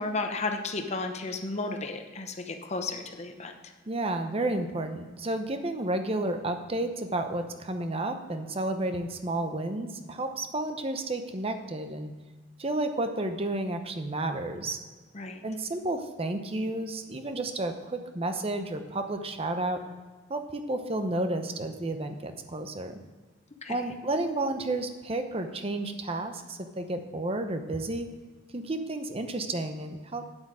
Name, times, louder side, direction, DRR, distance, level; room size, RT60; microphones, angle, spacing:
voice 1, 0.0-3.5 15.1-15.4 23.6-24.0 24.6-24.7, left 3 dB, 35° left, 5 dB, 0.8 m, -33 dB
voice 2, 3.9-12.1 12.6-14.8 15.4-19.8 20.3-23.0 23.7-28.1 28.5-30.2, right 2 dB, 30° right, 7 dB, 0.8 m, -31 dB
9.0 x 8.0 x 4.8 m, 1.4 s
head